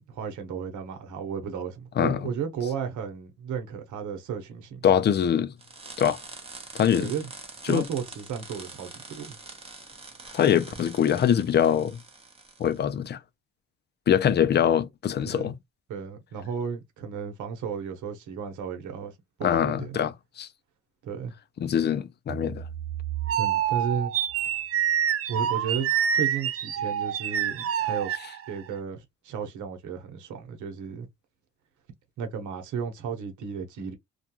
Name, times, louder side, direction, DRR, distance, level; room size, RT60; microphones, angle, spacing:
voice 1, 0.0-4.8 7.0-7.3 7.7-9.4 15.3-15.5 15.9-19.1 19.4-20.0 21.0-21.3 23.3-24.1 25.3-28.1 28.5-31.1 32.2-33.9, right 7 dB, 75° right, 0.9 m, -34 dB
voice 2, 4.8-5.5 6.0-6.2 6.7-7.1 7.7-7.8 10.3-12.0 12.6-13.2 14.1-15.5 19.4-20.5 21.6-22.6, left 9 dB, 35° left, 0.4 m, -23 dB
sound 1, 5.6-12.8, right 3 dB, 20° right, 0.9 m, -45 dB
sound 2, 22.3-28.7, right 9 dB, 50° right, 0.5 m, -27 dB
2.3 x 2.2 x 2.8 m
cardioid pair, 90°, 30 cm